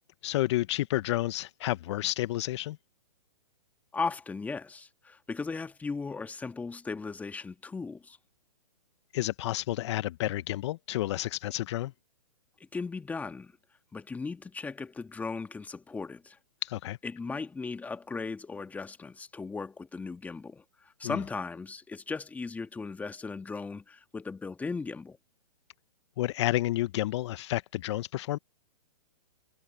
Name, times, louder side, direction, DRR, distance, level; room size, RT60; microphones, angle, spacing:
voice 1, 0.2-2.8 9.1-11.9 16.6-17.0 21.0-21.2 26.2-28.4, left 15 dB, 45° left, 0.9 m, -30 dB
voice 2, 3.9-8.2 12.7-13.5 13.9-16.4 17.0-25.2, left 4 dB, 10° left, 1.6 m, -37 dB
hypercardioid pair, 130°, 20 cm